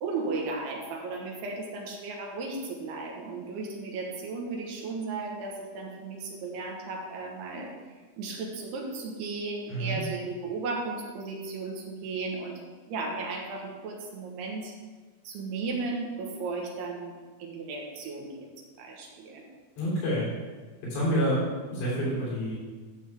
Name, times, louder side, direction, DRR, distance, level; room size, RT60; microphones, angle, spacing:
voice 1, 0.0-7.7 8.2-12.6 12.9-14.7 15.2-17.1 17.4-18.5 18.8-19.4 21.0-21.5, right 3 dB, 70° right, 0 dB, 3.2 m, -35 dB
voice 2, 9.7-10.0 19.8-20.3 20.8-21.4 21.7-22.5, equal, 70° left, -7 dB, 5.4 m, -28 dB
12.0 x 7.0 x 3.6 m, 1.4 s
omnidirectional pair, 5.1 m